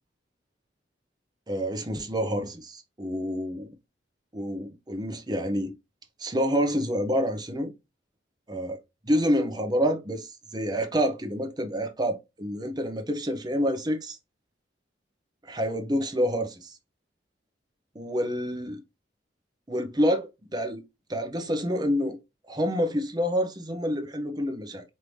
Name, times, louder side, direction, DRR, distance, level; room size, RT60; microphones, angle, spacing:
voice 1, 1.5-3.7 4.3-5.7 6.2-7.7 8.5-8.8 9.0-14.2 15.4-16.7 17.9-18.8 19.7-20.8 21.1-22.2 22.5-24.8, equal, 25° right, 0.7 m, -28 dB
4.8 x 2.8 x 3.1 m
head